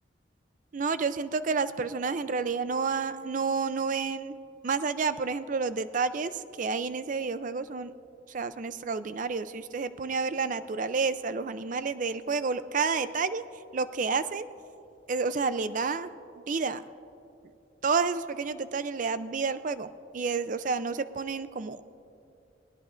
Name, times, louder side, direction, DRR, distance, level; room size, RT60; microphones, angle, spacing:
voice 1, 0.7-4.4 4.6-6.3 6.6-7.9 8.3-13.4 13.7-14.5 15.1-16.1 16.5-16.8 17.8-21.8, right 4 dB, 45° right, 13 dB, 0.4 m, -30 dB
21.0 x 18.0 x 2.5 m, 2.6 s
head